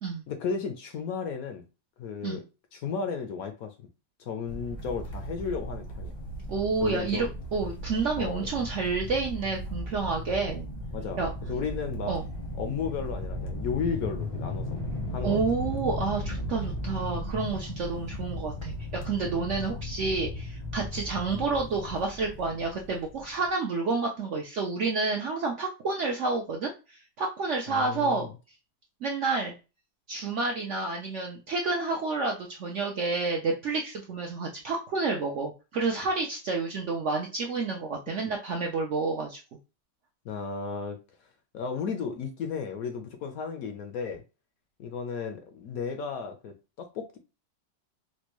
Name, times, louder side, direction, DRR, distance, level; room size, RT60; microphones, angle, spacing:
voice 1, 0.3-1.6 2.0-2.4 2.7-3.9 4.2-6.1 6.8-7.3 8.2-8.5 10.9-11.2 11.5-12.2 12.6-14.7 15.1-15.4 27.7-28.3 40.2-41.0 41.5-44.2 44.8-47.2, left 6 dB, 65° left, 6 dB, 0.9 m, -34 dB
sound 1, 4.5-23.5, left 1 dB, 30° left, 0.6 m, -36 dB
voice 2, 6.5-10.7 11.2-11.3 12.1-12.2 15.2-28.3 29.0-29.5 30.1-39.4, right 4 dB, 65° right, 1 dB, 0.7 m, -29 dB
4.3 x 2.2 x 3.0 m, 0.30 s
omnidirectional pair, 1.8 m